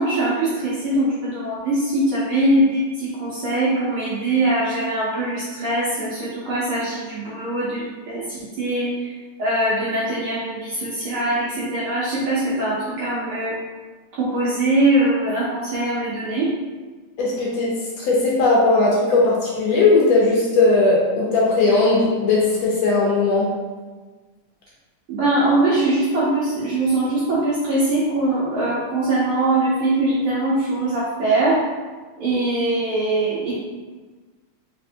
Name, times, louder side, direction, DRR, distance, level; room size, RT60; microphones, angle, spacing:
voice 1, 0.0-9.1 9.4-13.6 14.2-16.5 25.1-31.6 32.2-33.5, right 2 dB, 70° right, -9 dB, 1.4 m, -22 dB
voice 2, 17.2-23.5, left 3 dB, 75° left, -4 dB, 1.6 m, -18 dB
4.3 x 3.2 x 2.7 m, 1.4 s
omnidirectional pair, 3.3 m